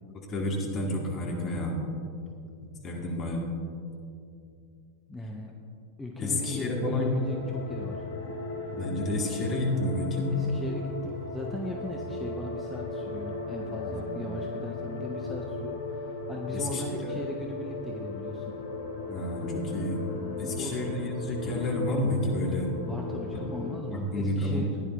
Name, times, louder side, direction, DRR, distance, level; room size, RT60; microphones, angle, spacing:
voice 1, 0.1-1.7 2.8-3.5 6.2-7.1 8.7-10.4 13.9-14.0 16.5-17.2 19.1-20.0 20.4-22.7 23.3-24.7, left 1 dB, 30° left, -1 dB, 2.2 m, -30 dB
voice 2, 5.1-5.5 6.0-8.0 10.3-18.5 20.4-20.9 22.8-24.8, left 2 dB, 5° left, 0 dB, 0.8 m, -38 dB
sound 1, 6.3-23.8, left 2 dB, 55° left, 1.6 m, -37 dB
15.0 x 10.0 x 3.3 m, 2.5 s
figure-of-eight pair, 90°, 0 cm